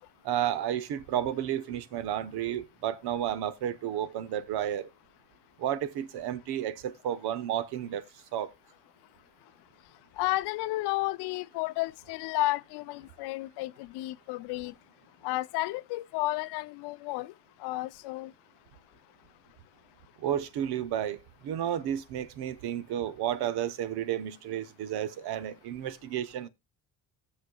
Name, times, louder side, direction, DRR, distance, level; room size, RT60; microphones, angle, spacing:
voice 1, 0.2-4.9 5.6-8.0 8.3-8.5 20.2-21.2 21.4-26.5, right 10 dB, 75° right, 1.0 m, -32 dB
voice 2, 10.2-14.7 15.2-17.3 17.6-18.3, left 18 dB, 85° left, 0.6 m, -32 dB
17.5 x 6.6 x 2.3 m
cardioid pair, 105°, 39 cm